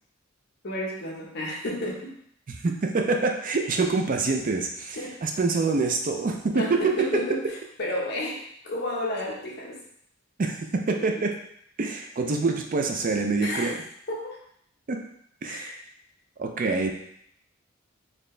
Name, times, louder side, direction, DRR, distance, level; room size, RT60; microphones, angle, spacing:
voice 1, 0.6-2.1 4.9-5.2 6.5-9.8 11.0-11.1 13.4-13.7 14.1-14.4 15.5-15.7, left 1 dB, 55° left, -3 dB, 1.1 m, -32 dB
voice 2, 2.6-7.2 10.4-10.6 10.9-11.3 11.8-13.8 14.9-15.0 15.4-15.7 16.4-16.9, right 3 dB, 45° right, 3 dB, 0.4 m, -26 dB
4.2 x 2.9 x 3.2 m, 0.69 s
head